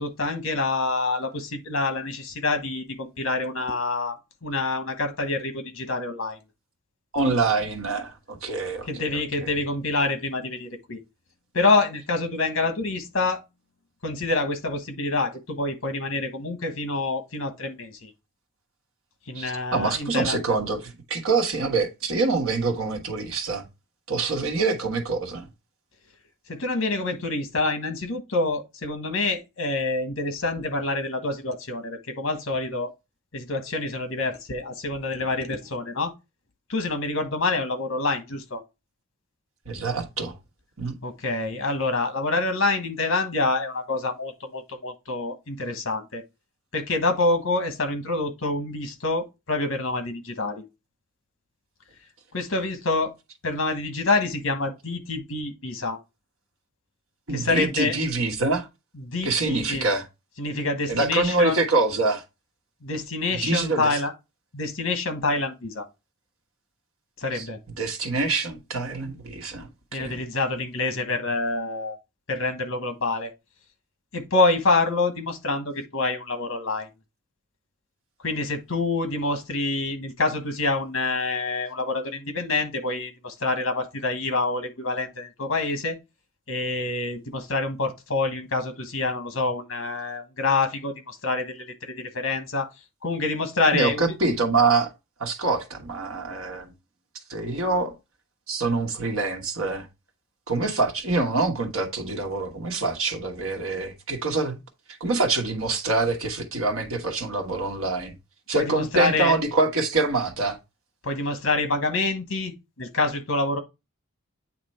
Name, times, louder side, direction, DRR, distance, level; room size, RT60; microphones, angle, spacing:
voice 1, 0.0-4.2 4.4-6.4 8.9-11.0 11.5-13.4 14.0-18.1 19.3-20.6 26.5-32.9 33.3-36.1 36.7-38.6 41.0-46.2 46.7-50.6 52.3-53.1 53.4-56.0 57.3-58.0 59.0-59.9 60.4-61.6 62.8-64.1 64.5-65.9 67.2-67.6 69.9-72.0 72.3-73.3 74.1-76.9 78.2-86.0 86.5-92.7 93.0-94.0 108.5-109.4 111.0-113.6, left 3 dB, 70° left, 1.3 m, -26 dB
voice 2, 7.1-9.5 19.3-23.7 24.1-25.5 39.7-40.4 40.8-41.0 57.3-58.7 59.2-60.1 60.9-62.2 63.3-63.9 67.3-67.5 67.8-70.2 93.7-94.9 95.2-96.7 97.3-97.9 98.5-99.9 100.5-104.6 105.0-108.1 108.5-110.6, right 3 dB, 80° right, 1.3 m, -25 dB
8.7 x 3.0 x 4.3 m
head